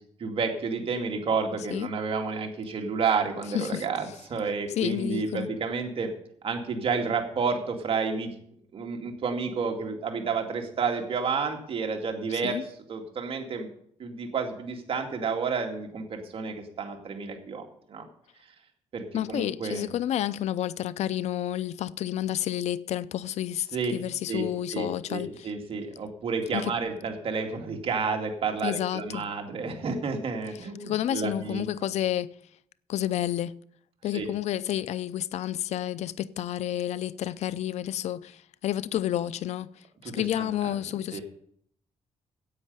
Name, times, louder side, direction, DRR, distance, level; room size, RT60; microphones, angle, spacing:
voice 1, 0.2-6.1 6.4-8.3 8.7-12.6 12.9-13.7 14.0-18.1 18.9-19.9 23.7-23.9 24.3-31.6 34.1-34.3 40.0-40.5 41.1-41.2, right 5 dB, 55° right, 2.3 m, -30 dB
voice 2, 3.5-3.8 4.8-5.5 12.4-12.6 19.1-23.7 23.9-25.5 26.5-26.7 28.6-29.3 30.8-32.3 32.9-33.6 34.0-39.7 40.1-41.2, left 12 dB, 75° left, 0.5 m, -30 dB
9.8 x 8.3 x 8.1 m
cardioid pair, 105°, 11 cm